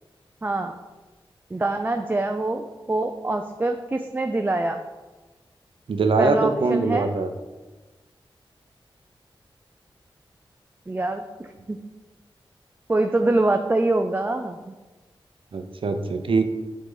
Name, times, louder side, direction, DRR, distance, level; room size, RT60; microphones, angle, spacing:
voice 1, 0.4-0.8 1.5-4.8 6.2-7.1 10.9-11.8 12.9-14.6, right 2 dB, 20° right, 5 dB, 0.4 m, -24 dB
voice 2, 5.9-7.3 15.5-16.4, right 3 dB, 75° right, 7 dB, 0.6 m, -22 dB
8.0 x 3.8 x 3.9 m, 1.2 s
wide cardioid pair, 80°, 9 cm